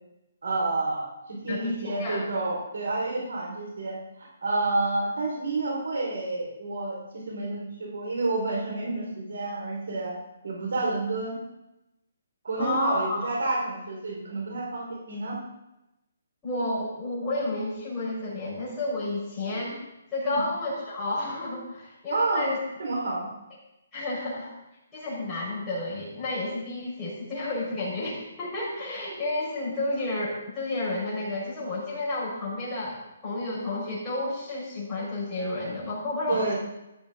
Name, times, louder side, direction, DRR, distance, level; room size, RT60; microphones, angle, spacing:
voice 1, 0.4-10.1 10.4-11.4 12.4-15.3 20.2-20.4 22.1-22.5 22.8-23.3 36.3-36.5, right 2 dB, 80° right, -2 dB, 5.0 m, -29 dB
voice 2, 1.5-2.2 12.6-13.3 16.4-19.8 20.1-22.6 23.9-24.5 24.9-33.0 33.2-36.5, left 2 dB, 10° left, -8 dB, 5.6 m, -31 dB
14.0 x 12.0 x 4.0 m, 0.91 s
hypercardioid pair, 170°, 0 cm